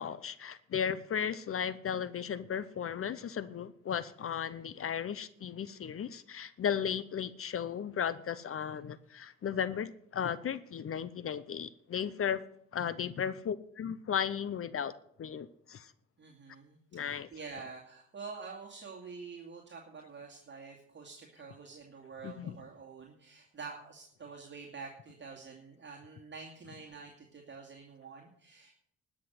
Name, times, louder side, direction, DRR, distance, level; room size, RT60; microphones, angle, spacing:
voice 1, 0.0-12.4 12.7-14.9 15.2-15.9 16.9-17.3 22.2-22.6, left 8 dB, 45° left, 16 dB, 0.7 m, -35 dB
voice 2, 16.2-28.7, right 5 dB, 40° right, -1 dB, 2.4 m, -47 dB
12.5 x 6.4 x 9.3 m, 0.67 s
cardioid pair, 90°, 30 cm